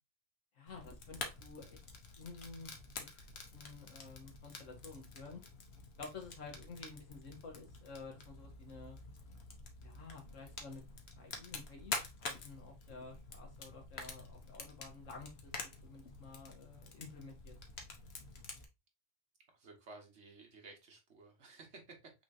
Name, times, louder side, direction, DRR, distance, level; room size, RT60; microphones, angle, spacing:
voice 1, 0.6-1.8 2.2-2.7 3.0-3.3 3.5-5.4 6.0-9.0 9.8-10.8 11.2-17.5, left 4 dB, 80° left, 1 dB, 1.8 m, -51 dB
Fire, 0.7-18.6, left 4 dB, 60° left, 1.2 m, -48 dB
voice 2, 19.5-22.1, right 3 dB, 65° right, 2 dB, 1.6 m, -55 dB
5.8 x 3.4 x 2.6 m, 0.24 s
omnidirectional pair, 1.3 m